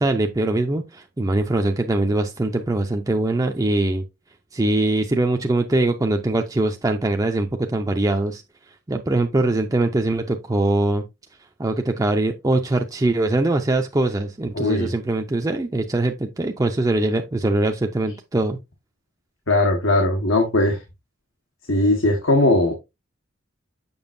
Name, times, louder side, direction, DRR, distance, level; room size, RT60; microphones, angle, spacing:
voice 1, 0.0-4.0 4.5-8.4 8.9-11.0 11.6-18.6, right 2 dB, 20° right, 0.5 m, -22 dB
voice 2, 14.5-14.9 19.5-20.8 21.7-22.7, left 2 dB, 80° left, 1.4 m, -19 dB
7.1 x 6.1 x 2.6 m
head